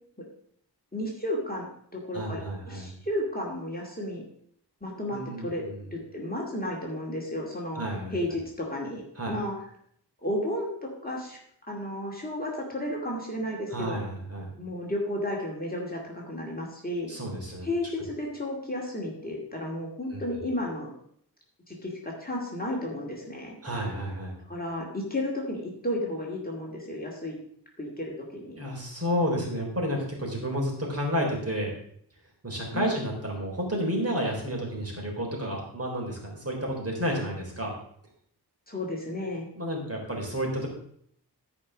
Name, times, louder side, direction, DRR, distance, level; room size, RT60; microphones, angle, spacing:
voice 1, 0.9-4.2 4.8-5.6 5.9-7.8 8.1-9.5 10.2-11.4 11.7-14.0 14.6-17.1 17.6-20.9 21.7-23.6 24.5-27.4 27.8-28.6 32.7-32.9 38.7-39.5, left 1 dB, 20° left, -2 dB, 2.3 m, -33 dB
voice 2, 2.1-2.9 5.1-5.8 7.8-8.1 9.2-9.4 13.7-14.5 17.1-17.7 20.1-20.2 23.6-24.3 28.6-31.7 32.4-37.7 39.5-40.7, equal, 35° right, -1 dB, 3.6 m, -31 dB
13.0 x 5.4 x 6.2 m, 0.66 s
wide cardioid pair, 90°, 41 cm